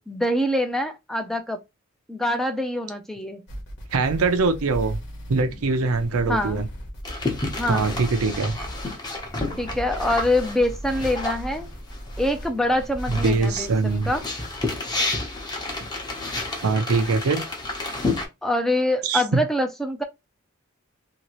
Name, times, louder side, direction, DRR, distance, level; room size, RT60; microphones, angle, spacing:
voice 1, 0.0-1.6 2.1-3.4 6.3-6.6 7.6-7.9 9.6-11.7 12.2-14.2 18.4-20.0, left 1 dB, ahead, 0.4 m, -25 dB
sound 1, 3.5-14.2, equal, 55° left, 1.1 m, -37 dB
voice 2, 3.9-5.0 5.3-6.7 7.7-8.6 13.1-14.1 16.6-17.4 19.0-19.4, right 4 dB, 85° right, 0.5 m, -22 dB
sound 2, 7.0-12.5 12.8-18.3, left 2 dB, 20° left, 0.8 m, -31 dB
2.8 x 2.8 x 3.0 m
head